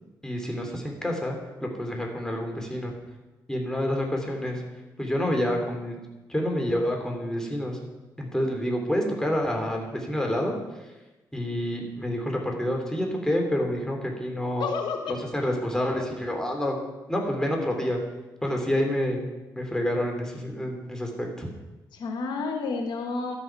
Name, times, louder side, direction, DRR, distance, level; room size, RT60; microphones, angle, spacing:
voice 1, 0.2-2.9 3.5-4.6 5.0-6.0 6.3-7.8 8.2-10.6 11.3-14.7 15.1-16.8 17.1-18.0 18.4-19.3 19.5-21.5, equal, 10° left, 1 dB, 3.3 m, -28 dB
voice 2, 14.6-15.1 21.9-23.4, left 4 dB, 75° left, 4 dB, 1.4 m, -30 dB
12.5 x 8.4 x 6.0 m, 1.1 s
cardioid pair, 75°, 8 cm